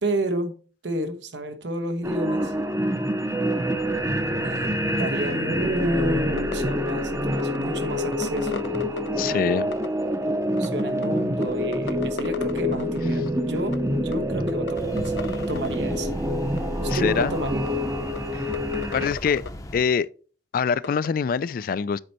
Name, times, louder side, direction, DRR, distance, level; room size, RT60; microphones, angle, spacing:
voice 1, 0.0-0.6 0.8-2.5 4.3-4.7 5.0-8.6 9.3-9.4 10.2-16.1 16.8-17.6, right 1 dB, 90° right, 1.1 m, -30 dB
sound 1, 2.0-19.1, equal, 15° right, 0.6 m, -26 dB
sound 2, 6.4-6.5 6.9-7.0 7.3-9.1 9.7-9.9 10.6-11.1 11.4-11.5 11.7-13.0 13.3-13.4 13.6-13.8 14.1-14.2 14.5-15.8 16.6-16.7 17.2-17.3 17.7-17.8 18.2-18.3 18.5-19.5 20.8-21.1, left 4 dB, 85° left, 0.7 m, -35 dB
voice 2, 9.2-9.7 16.9-17.3 18.3-18.5 18.9-19.4 19.7-20.1 20.5-22.0, left 6 dB, 50° left, 0.3 m, -24 dB
sound 3, 14.7-19.8, left 1 dB, 20° left, 0.7 m, -37 dB
7.9 x 4.5 x 4.1 m
head